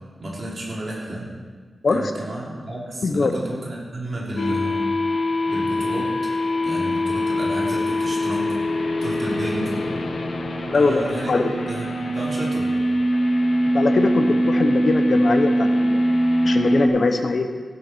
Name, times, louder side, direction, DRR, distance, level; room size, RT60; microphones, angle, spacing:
voice 1, 0.2-1.3 1.9-3.6 3.9-4.8 5.5-6.1 6.6-8.5 9.0-9.8 10.7-11.4 11.7-12.7, right 1 dB, 40° right, -5 dB, 3.6 m, -31 dB
voice 2, 3.0-3.3 10.7-11.6 13.7-17.5, left 3 dB, 45° left, 6 dB, 1.0 m, -22 dB
sound 1, 4.4-16.9, equal, 80° left, 1.4 m, -22 dB
15.5 x 11.0 x 4.6 m, 1.6 s
wide cardioid pair, 165°, 0 cm